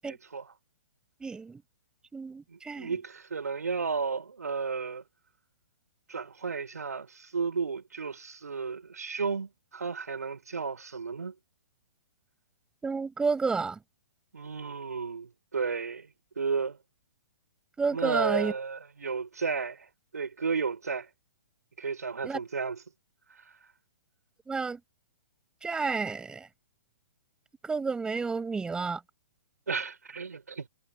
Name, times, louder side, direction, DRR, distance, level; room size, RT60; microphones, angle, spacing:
voice 1, 0.1-0.5 2.5-5.0 6.1-11.3 14.3-16.1 16.4-16.8 17.9-21.1 21.8-22.8 29.7-30.7, right 5 dB, 75° right, 5.5 m, -33 dB
voice 2, 1.2-1.6 2.1-2.9 12.8-13.8 17.8-18.5 22.2-22.4 24.5-24.8 25.6-26.5 27.6-29.0, right 4 dB, 10° right, 7.4 m, -30 dB
figure-of-eight pair, 120°, 9 cm